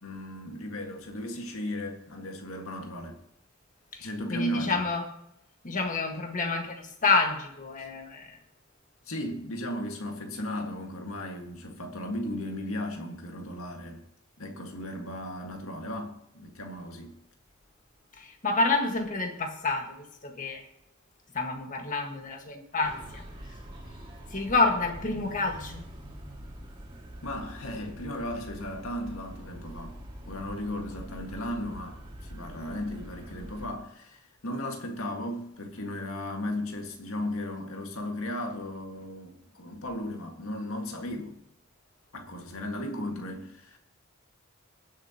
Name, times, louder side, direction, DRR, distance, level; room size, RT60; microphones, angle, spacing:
voice 1, 0.0-3.2 4.0-4.8 7.8-7.9 9.1-14.0 14.4-17.2 27.2-30.0 30.3-41.4 42.1-43.8, left 1 dB, 90° left, 1.9 m, -36 dB
voice 2, 3.9-5.0 5.6-8.4 18.2-20.0 20.2-20.6 21.3-23.2 24.3-25.8, left 3 dB, 40° left, 1.7 m, -28 dB
sound 1, 22.8-33.7, equal, 25° right, 2.1 m, -44 dB
23.0 x 7.7 x 3.0 m
head